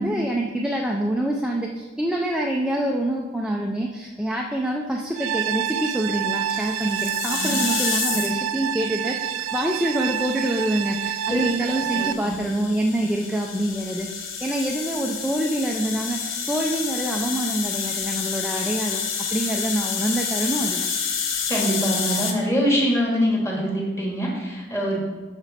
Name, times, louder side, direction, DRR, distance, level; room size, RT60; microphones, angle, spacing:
voice 1, 0.0-19.0 19.3-20.9, right 1 dB, 5° right, -1 dB, 0.4 m, -26 dB
sound 1, 5.1-12.1, right 9 dB, 85° right, 0.3 m, -28 dB
sound 2, 6.5-8.5 9.5-22.3, left 6 dB, 75° left, 0.9 m, -29 dB
voice 2, 11.9-12.4 21.5-25.0, equal, 15° left, -3 dB, 1.9 m, -24 dB
8.3 x 6.1 x 4.2 m, 1.3 s
head